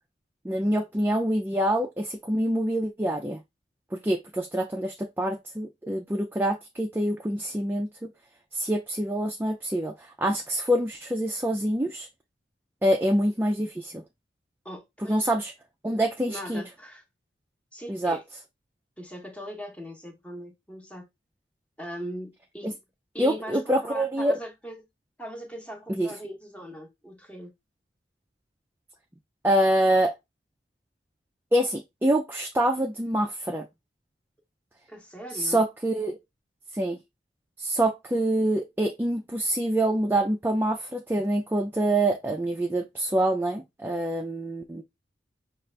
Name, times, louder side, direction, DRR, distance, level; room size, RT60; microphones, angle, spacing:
voice 1, 0.4-3.4 3.9-8.1 8.5-12.1 12.8-14.0 15.1-15.5 15.8-16.6 17.9-18.2 22.6-22.7 23.2-24.4 26.0-26.1 29.4-30.1 31.5-33.7 35.3-36.2 36.7-37.0 37.6-44.8, right 1 dB, 10° right, 0.4 m, -26 dB
voice 2, 14.6-15.3 16.3-17.0 17.7-18.2 19.0-21.1 21.8-22.8 23.1-24.8 25.2-27.5 34.9-35.6, equal, 5° left, 0.9 m, -40 dB
5.3 x 2.4 x 3.3 m
head